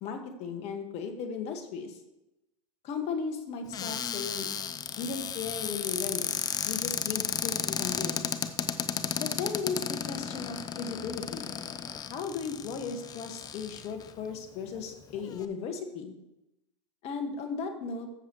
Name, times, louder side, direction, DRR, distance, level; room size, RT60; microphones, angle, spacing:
voice 1, 0.0-2.0 2.8-4.5 5.0-6.3 6.7-8.2 9.2-11.5 12.1-16.1 17.0-18.1, left 5 dB, 40° left, 6 dB, 1.7 m, -36 dB
Cupboard open or close, 3.7-14.1 14.8-14.9 15.1-15.4, left 8 dB, 25° left, 0.7 m, -34 dB
14.0 x 7.2 x 3.1 m, 0.92 s
hypercardioid pair, 105°, 16 cm